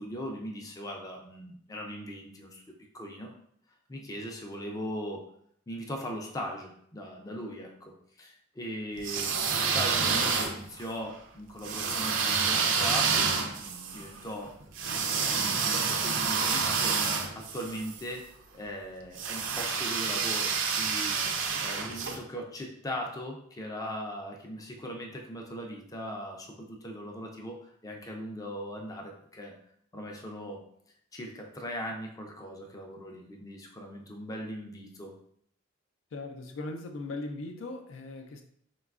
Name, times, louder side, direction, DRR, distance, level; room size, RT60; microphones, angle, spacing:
voice 1, 0.0-2.6 2.9-3.3 3.9-5.3 5.7-14.5 14.9-17.0 17.3-18.3 18.5-21.2 21.6-29.5 29.9-30.6 31.1-35.1, equal, 20° left, 1 dB, 0.4 m, -39 dB
sound 1, 9.0-10.9 11.6-18.0 19.1-22.2, right 5 dB, 75° right, 0.4 m, -28 dB
voice 2, 36.1-38.4, left 2 dB, 90° left, 5 dB, 0.4 m, -39 dB
3.9 x 2.2 x 2.4 m, 0.66 s
head